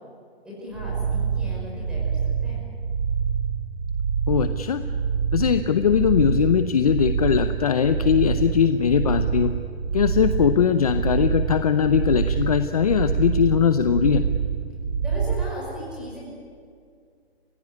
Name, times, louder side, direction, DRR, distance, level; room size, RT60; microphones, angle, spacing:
voice 1, 0.4-2.6 15.0-16.2, left 1 dB, 5° right, -5 dB, 5.6 m, -37 dB
sound 1, 0.7-15.5, right 6 dB, 40° right, 2.2 m, -26 dB
voice 2, 4.3-4.8 5.3-9.5 9.9-14.2, left 8 dB, 35° left, 10 dB, 0.7 m, -20 dB
29.5 x 16.0 x 9.8 m, 2.2 s
hypercardioid pair, 170°, 32 cm